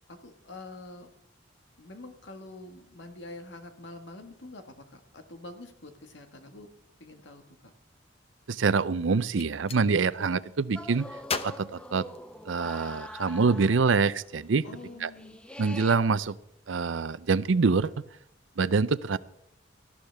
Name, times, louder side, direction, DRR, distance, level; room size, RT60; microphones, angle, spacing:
voice 1, 0.1-1.1 1.8-6.7 7.0-7.7 14.6-15.4, left 2 dB, 70° left, 6 dB, 1.7 m, -46 dB
voice 2, 8.5-11.1 11.4-12.1 12.5-14.7 15.0-15.1 15.6-16.4 16.7-17.9 18.6-19.2, right 4 dB, 90° right, 17 dB, 0.6 m, -25 dB
Gunshot gunfire, 9.3-9.8 11.2-12.7, left 5 dB, 30° left, 0.8 m, -36 dB
sound 1, 10.7-14.0 14.3-14.4 14.6-16.0, left 1 dB, 5° left, 0.5 m, -44 dB
18.5 x 13.0 x 3.5 m, 0.71 s
head